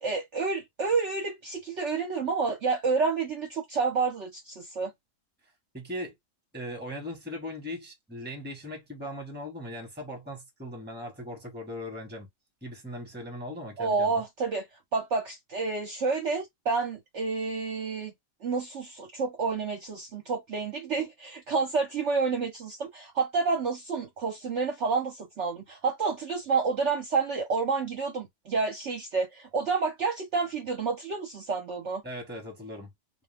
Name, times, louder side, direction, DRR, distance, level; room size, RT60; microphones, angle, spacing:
voice 1, 0.0-4.9 13.8-14.6 14.9-18.1 18.4-32.0, right 4 dB, 55° right, 0.9 m, -29 dB
voice 2, 5.7-6.1 6.5-12.3 12.6-14.2 32.0-32.9, left 1 dB, 5° right, 1.1 m, -39 dB
2.5 x 2.2 x 3.3 m
omnidirectional pair, 1.7 m